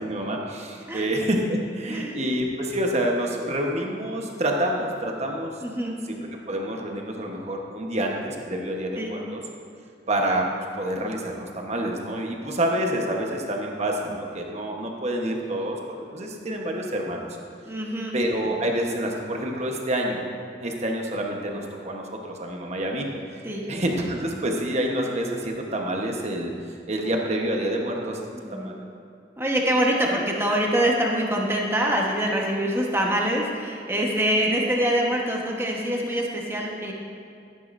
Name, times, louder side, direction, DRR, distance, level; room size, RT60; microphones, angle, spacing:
voice 1, 0.0-5.5 6.1-9.4 10.1-10.4 10.7-15.8 16.1-17.2 18.1-20.3 20.6-23.1 23.7-26.5 26.9-28.2 28.5-28.8, right 1 dB, 40° right, 1 dB, 1.1 m, -27 dB
voice 2, 5.6-6.0 9.0-9.1 12.4-12.6 17.6-18.2 18.4-18.5 23.4-23.7 28.3-28.7 29.4-36.9, right 1 dB, 15° right, -1 dB, 1.2 m, -25 dB
12.5 x 10.5 x 2.6 m, 2.4 s
head